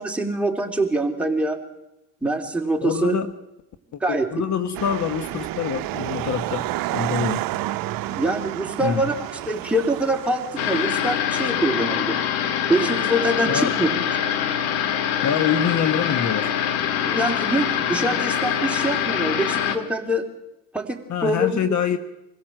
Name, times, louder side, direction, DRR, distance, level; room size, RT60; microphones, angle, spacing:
voice 1, 0.0-1.6 2.2-3.2 4.0-4.3 8.1-9.2 9.5-12.2 12.7-13.9 17.0-20.2 20.7-21.6, right 1 dB, 5° right, 1 dB, 3.3 m, -24 dB
voice 2, 2.8-3.3 3.9-6.7 6.9-7.5 8.8-9.1 13.5-13.8 15.2-16.5 21.1-22.0, left 8 dB, 45° left, 11 dB, 1.2 m, -25 dB
sound 1, 4.7-11.4, right 16 dB, 60° right, 0.8 m, -30 dB
sound 2, 10.6-19.8, left 9 dB, 70° left, 2.1 m, -24 dB
24.5 x 16.0 x 7.7 m, 0.92 s
supercardioid pair, 80°, 39 cm